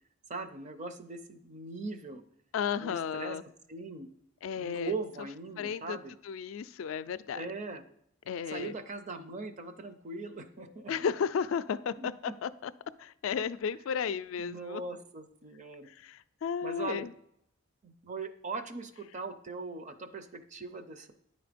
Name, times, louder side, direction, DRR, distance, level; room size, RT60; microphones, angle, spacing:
voice 1, 0.3-2.2 2.8-3.4 3.7-4.1 4.6-6.1 7.3-7.8 8.5-10.9 12.0-12.3 14.4-15.9 16.6-17.1 17.8-21.1, right 3 dB, 35° right, 10 dB, 0.6 m, -40 dB
voice 2, 2.5-3.4 4.4-5.0 5.6-6.0 6.2-7.5 8.3-8.7 10.9-12.7 13.0-14.8 16.0-17.1, left 7 dB, 80° left, 14 dB, 0.3 m, -33 dB
9.7 x 4.0 x 5.1 m, 0.73 s
head